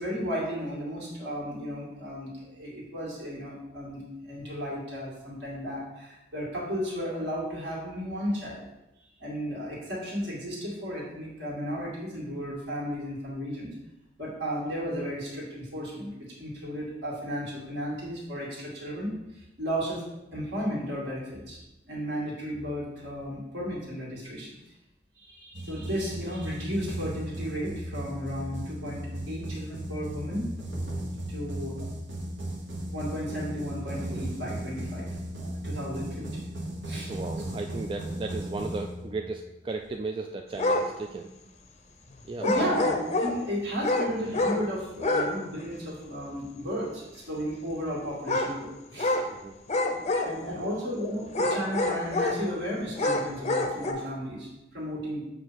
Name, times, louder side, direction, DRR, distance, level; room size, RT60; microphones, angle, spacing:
voice 1, 0.0-8.7 9.2-13.7 14.2-16.1 16.4-20.0 20.3-21.6 21.8-24.6 25.2-30.5 31.3-31.8 32.9-36.4 36.8-37.1 42.4-49.3 50.2-55.3, equal, 65° right, -5 dB, 2.3 m, -34 dB
sound 1, 25.5-39.4, right 1 dB, 90° right, 1.2 m, -36 dB
voice 2, 37.1-41.3 42.2-42.8 49.3-49.6 50.6-50.7, right 3 dB, 30° right, 3 dB, 0.3 m, -35 dB
sound 2, 40.6-40.9 42.4-43.4 43.8-44.6 45.0-45.3 45.6-45.7 48.3-48.5 49.0-49.3 49.7-50.5 51.3-52.4 52.9-53.9, left 2 dB, 35° left, 0.6 m, -27 dB
7.5 x 2.6 x 5.8 m, 0.94 s
head